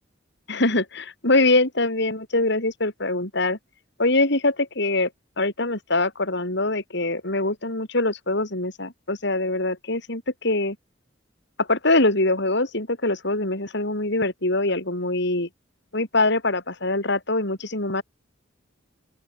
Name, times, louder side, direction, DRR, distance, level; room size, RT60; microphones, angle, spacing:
voice 1, 0.5-3.6 4.0-5.1 5.4-10.8 11.6-15.5 15.9-18.0, left 2 dB, 65° left, 6.4 m, -23 dB
open air
head